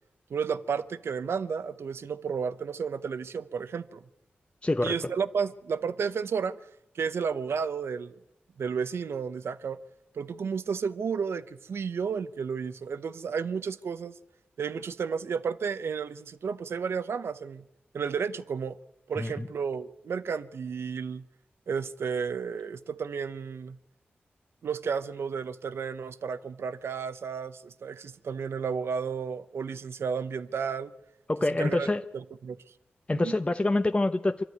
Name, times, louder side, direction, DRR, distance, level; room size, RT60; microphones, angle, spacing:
voice 1, 0.3-4.0 4.8-6.6 6.9-8.1 8.6-9.8 10.1-14.2 14.6-17.6 17.9-18.8 19.1-21.2 21.7-23.8 24.6-30.9 31.6-31.9 32.4-32.6 33.1-33.3, right 6 dB, 80° right, 0.9 m, -32 dB
voice 2, 4.6-5.0 19.2-19.5 31.3-32.0 33.1-34.4, left 2 dB, 25° left, 1.0 m, -26 dB
24.5 x 12.5 x 9.4 m
cardioid pair, 45°, 4 cm